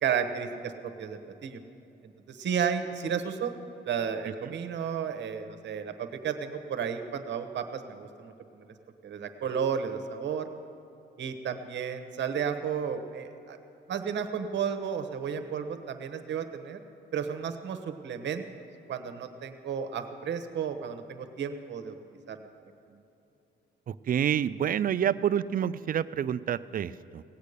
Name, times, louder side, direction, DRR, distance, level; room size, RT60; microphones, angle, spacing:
voice 1, 0.0-1.6 2.3-3.6 3.8-8.7 9.0-10.5 11.2-13.6 13.9-16.8 17.1-18.5 18.9-21.9 22.3-22.4, right 7 dB, 65° right, 8 dB, 1.1 m, -33 dB
voice 2, 23.9-27.2, right 9 dB, 45° right, 16 dB, 0.4 m, -28 dB
17.5 x 8.3 x 6.7 m, 2.9 s
cardioid pair, 90°, 20 cm